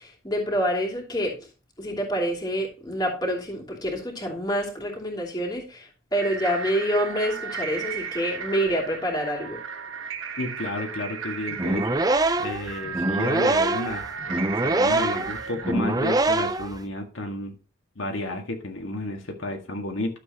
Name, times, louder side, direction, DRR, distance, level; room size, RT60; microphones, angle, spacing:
voice 1, 0.0-1.4 1.8-9.6, equal, 20° left, 2.9 m, -27 dB
sound 1, 6.1-15.7, right 6 dB, 85° right, 1.3 m, -35 dB
voice 2, 10.4-12.0 12.4-14.0 14.6-17.6 18.0-20.2, left 1 dB, 75° left, 1.8 m, -31 dB
sound 2, 11.5-16.8, right 2 dB, 20° right, 0.5 m, -24 dB
12.5 x 7.6 x 2.9 m
head